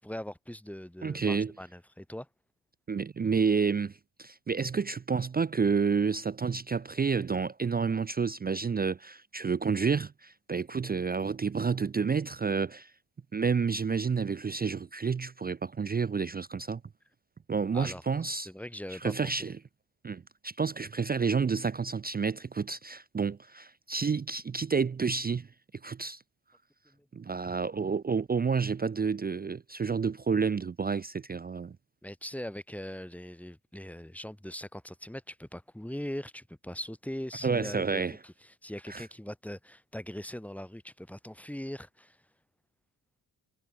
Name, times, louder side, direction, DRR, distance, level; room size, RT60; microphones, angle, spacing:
voice 1, 0.0-2.3 17.7-18.0 18.4-19.5 26.9-27.0 32.0-42.2, left 1 dB, 5° left, 6.6 m, -41 dB
voice 2, 1.0-1.5 2.9-12.9 13.3-16.8 17.5-18.5 18.9-19.5 20.0-25.5 25.8-26.2 27.1-31.8 37.4-38.2 38.9-39.0, right 5 dB, 20° right, 0.5 m, -30 dB
cardioid pair, 105°, 43 cm